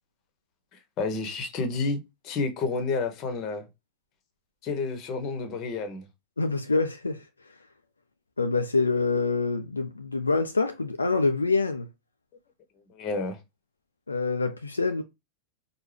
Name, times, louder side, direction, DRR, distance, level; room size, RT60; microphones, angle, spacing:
voice 1, 1.0-3.6 4.6-6.0 12.9-13.4, left 3 dB, 35° left, 1.0 m, -30 dB
voice 2, 6.4-7.2 8.4-11.9 14.1-15.0, left 3 dB, 80° left, 0.3 m, -26 dB
4.6 x 2.2 x 3.2 m
figure-of-eight pair, 90°, 0 cm